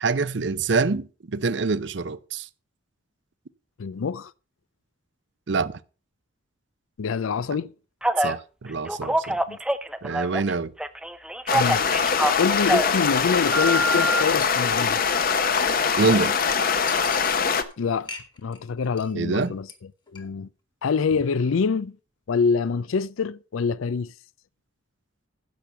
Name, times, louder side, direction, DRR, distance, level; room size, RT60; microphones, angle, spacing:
voice 1, 0.0-2.5 5.5-5.7 8.2-9.4 10.0-10.7 16.0-16.4 19.1-19.5, right 4 dB, 60° right, 0.6 m, -25 dB
voice 2, 3.8-4.3 7.0-7.7 9.5-9.6 11.5-12.0 12.4-15.0 17.8-18.1 18.4-19.7 20.1-20.5 20.8-22.0 22.3-24.1, left 5 dB, 85° left, 0.5 m, -25 dB
Telephone, 8.0-8.4 8.9-10.5 10.8-13.0 13.5-14.2, right 1 dB, 5° right, 0.5 m, -25 dB
sound 1, 11.5-17.6, left 6 dB, 45° left, 0.8 m, -23 dB
Chink clink, 14.1-14.2 14.4-15.7 16.1-16.2 16.4-16.5 16.9-17.7 18.0-18.6 18.8-19.1 19.4-19.7 20.1-20.2, left 4 dB, 20° left, 1.4 m, -40 dB
10.5 x 6.9 x 5.7 m
head